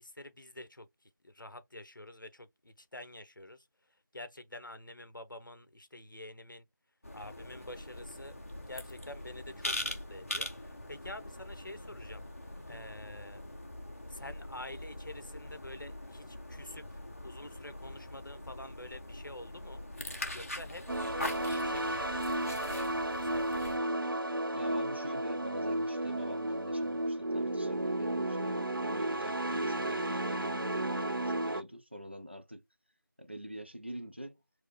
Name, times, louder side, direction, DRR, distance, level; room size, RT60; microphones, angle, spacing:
voice 1, 0.0-3.7 4.1-6.7 7.1-8.4 8.7-13.4 14.1-19.8 20.3-20.8 21.4-23.7, left 1 dB, 70° left, 0.9 m, -48 dB
sound 1, 7.0-23.8, left 1 dB, 40° left, 0.9 m, -42 dB
sound 2, 20.9-31.6, right 1 dB, 85° right, 0.8 m, -33 dB
voice 2, 24.5-32.6 33.2-34.4, equal, 30° right, 0.4 m, -45 dB
4.7 x 2.1 x 3.5 m
figure-of-eight pair, 170°, 11 cm